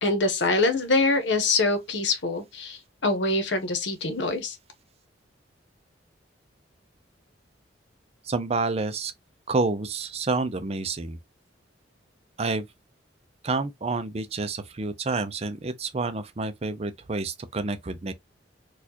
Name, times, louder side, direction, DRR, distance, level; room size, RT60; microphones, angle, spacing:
voice 1, 0.0-4.6, left 3 dB, 75° left, 1.0 m, -24 dB
voice 2, 8.3-9.1 9.5-11.2 12.4-12.7 13.4-18.1, right 3 dB, 35° right, 0.5 m, -28 dB
4.2 x 2.4 x 2.8 m
head